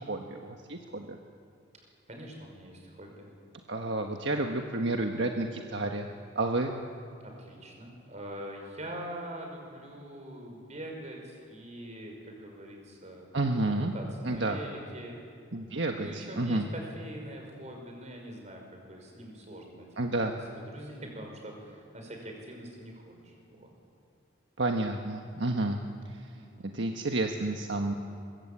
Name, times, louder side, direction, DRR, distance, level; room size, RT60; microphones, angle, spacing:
voice 1, 0.1-1.2 3.7-6.1 6.3-6.7 13.3-13.9 14.2-14.6 15.5-16.7 20.0-20.3 24.6-25.8 26.7-27.9, right 2 dB, 70° right, 3 dB, 1.4 m, -30 dB
voice 2, 2.1-3.3 7.2-13.3 13.9-15.2 15.9-19.9 20.5-23.7 26.4-26.7, right 1 dB, 35° right, 1 dB, 5.6 m, -43 dB
23.5 x 22.5 x 8.7 m, 2.4 s
head